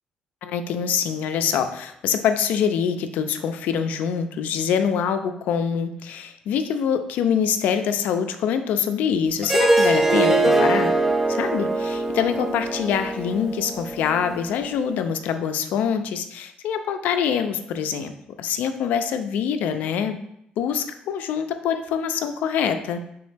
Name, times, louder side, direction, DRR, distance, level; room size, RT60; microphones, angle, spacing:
voice 1, 0.4-11.0 11.3-18.1 18.4-20.2 20.6-23.0, left 7 dB, 80° left, 8 dB, 0.3 m, -25 dB
Harp, 9.4-14.6, right 2 dB, 15° right, 0.3 m, -22 dB
3.6 x 3.0 x 3.2 m, 0.75 s
cardioid pair, 120°, 3 cm